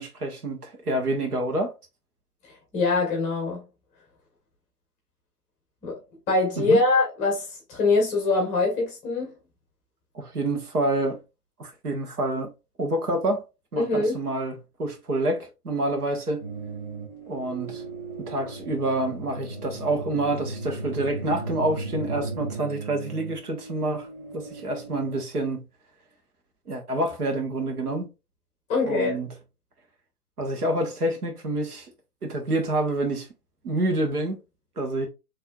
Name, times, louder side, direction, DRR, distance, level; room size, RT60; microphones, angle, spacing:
voice 1, 0.0-1.7 6.6-6.8 10.1-11.2 11.6-12.5 12.8-13.4 13.7-16.4 17.3-17.8 18.2-24.1 24.3-25.6 26.7-28.1 28.8-29.3 30.4-31.9 32.2-33.3 33.6-34.4 34.8-35.1, right 2 dB, 70° right, 1.6 m, -27 dB
voice 2, 2.7-3.6 5.8-6.0 6.3-9.3 13.8-14.2 28.7-29.2, left 3 dB, 15° left, 1.1 m, -23 dB
sound 1, 16.4-25.2, right 3 dB, 20° right, 2.4 m, -36 dB
4.6 x 3.2 x 2.4 m
figure-of-eight pair, 125°, 47 cm